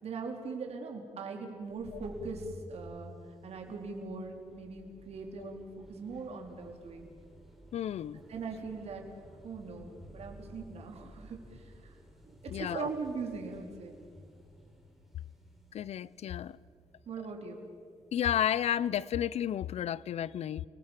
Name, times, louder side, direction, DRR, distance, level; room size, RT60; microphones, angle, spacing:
voice 1, 0.0-3.1 3.4-7.1 8.3-9.1 9.4-11.9 12.3-13.9 17.1-17.6, right 4 dB, 65° right, 3.9 m, -40 dB
sound 1, 1.6-19.0, equal, ahead, 4.8 m, -55 dB
voice 2, 7.7-8.2 12.5-12.9 15.7-16.6 18.1-20.6, left 10 dB, 65° left, 0.6 m, -32 dB
29.5 x 19.5 x 7.4 m
cardioid pair, 120°, 12 cm